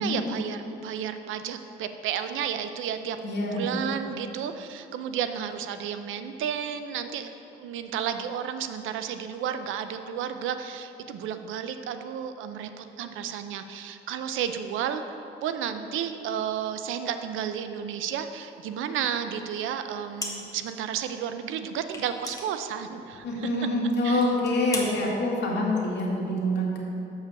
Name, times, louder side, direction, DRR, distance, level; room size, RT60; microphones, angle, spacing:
voice 1, 0.0-3.2 3.4-23.5 24.0-24.3, right 8 dB, 85° right, 9 dB, 0.5 m, -32 dB
voice 2, 3.2-3.6 23.2-26.8, left 1 dB, 65° left, -3 dB, 1.9 m, -26 dB
sound 1, 20.2-20.7 21.0-21.1 21.9-23.3 23.6-23.8 24.2-24.9, left 2 dB, 15° left, 1.3 m, -36 dB
6.7 x 5.5 x 6.8 m, 2.8 s
cardioid pair, 90°, 20 cm